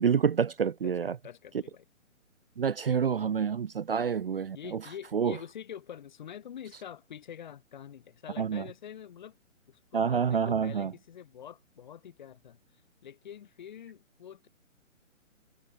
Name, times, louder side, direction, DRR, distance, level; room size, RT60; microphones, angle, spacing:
voice 1, 0.0-1.1 2.6-4.6 5.1-5.3 8.4-8.6 9.9-10.9, right 7 dB, 45° right, 0.5 m, -27 dB
voice 2, 0.8-1.9 4.5-9.4 9.7-12.6 13.0-14.5, left 9 dB, 35° left, 1.6 m, -46 dB
hypercardioid pair, 165°, 40 cm